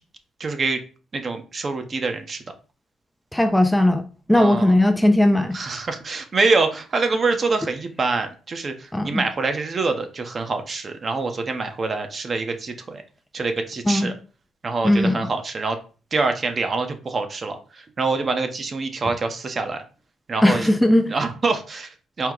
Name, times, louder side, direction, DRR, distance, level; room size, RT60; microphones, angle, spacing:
voice 1, 0.4-0.8 1.1-2.4 4.3-4.7 5.5-13.0 13.3-14.1 14.6-15.8 16.1-19.8 20.3-20.7 21.1-22.3, right 3 dB, 40° right, 0.7 m, -25 dB
voice 2, 3.3-5.6 8.9-9.2 13.9-14.1 14.8-15.3 20.4-21.1, left 1 dB, 5° left, 0.4 m, -18 dB
4.5 x 2.1 x 3.7 m
cardioid pair, 90°, 0 cm